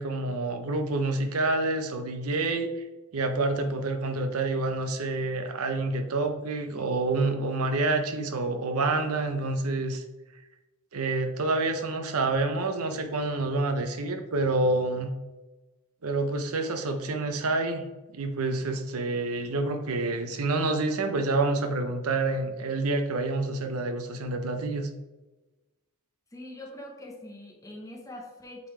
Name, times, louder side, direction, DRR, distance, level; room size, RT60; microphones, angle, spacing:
voice 1, 0.0-2.7 3.1-10.0 10.9-15.1 16.0-17.8 18.1-24.9, right 2 dB, 85° right, 6 dB, 0.8 m, -28 dB
voice 2, 26.3-28.7, left 1 dB, 15° left, 0 dB, 0.9 m, -43 dB
8.2 x 3.9 x 3.3 m, 1.1 s
head